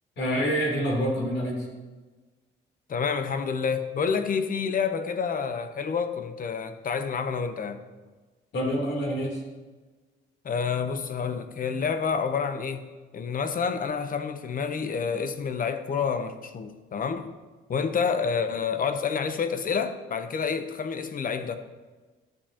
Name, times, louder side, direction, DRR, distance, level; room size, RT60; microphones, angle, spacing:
voice 1, 0.2-1.7 8.5-9.4, equal, 65° left, -1 dB, 3.2 m, -27 dB
voice 2, 2.9-7.8 10.4-12.9 13.1-17.3 17.7-21.6, left 6 dB, 45° left, 9 dB, 0.8 m, -28 dB
12.5 x 7.4 x 2.9 m, 1.3 s
cardioid pair, 90°, 20 cm